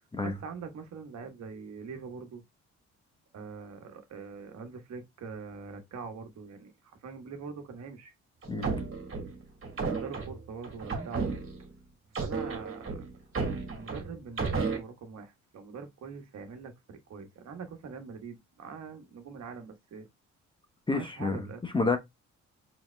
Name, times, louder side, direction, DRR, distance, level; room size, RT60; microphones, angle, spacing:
voice 1, 0.2-2.4 3.3-8.1 9.8-11.3 12.2-13.0 13.7-20.1 20.9-21.6, right 5 dB, 60° right, 1.3 m, -43 dB
sound 1, 8.4-11.7 12.2-14.8, right 4 dB, 45° right, 1.7 m, -33 dB
voice 2, 20.9-22.0, left 3 dB, 15° left, 0.8 m, -29 dB
4.9 x 3.9 x 2.2 m
cardioid pair, 90°, 30 cm